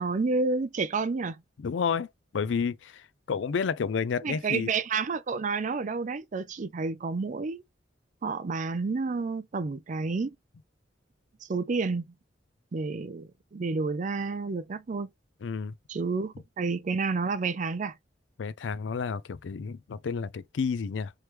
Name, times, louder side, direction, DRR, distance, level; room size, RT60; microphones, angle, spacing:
voice 1, 0.0-1.4 4.2-7.6 8.2-10.3 11.5-12.1 12.7-15.1 15.9-17.9, right 4 dB, 45° right, 0.4 m, -30 dB
voice 2, 1.6-2.1 2.3-4.7 15.4-15.7 18.4-21.1, left 6 dB, 85° left, 0.4 m, -30 dB
3.3 x 3.0 x 3.0 m
head